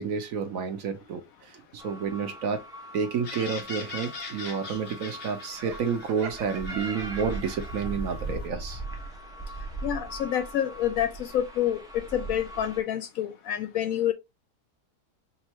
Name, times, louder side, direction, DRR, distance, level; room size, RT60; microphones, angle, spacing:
voice 1, 0.0-2.6 2.9-8.8, right 6 dB, 60° right, 1.1 m, -30 dB
sound 1, 1.8-12.8, right 2 dB, 5° right, 0.4 m, -40 dB
sound 2, 3.2-8.5, left 4 dB, 50° left, 1.1 m, -42 dB
Laughter, 5.5-7.8, right 6 dB, 90° right, 1.5 m, -44 dB
voice 2, 9.8-14.1, left 10 dB, 70° left, 0.9 m, -28 dB
5.4 x 2.5 x 2.9 m
omnidirectional pair, 1.7 m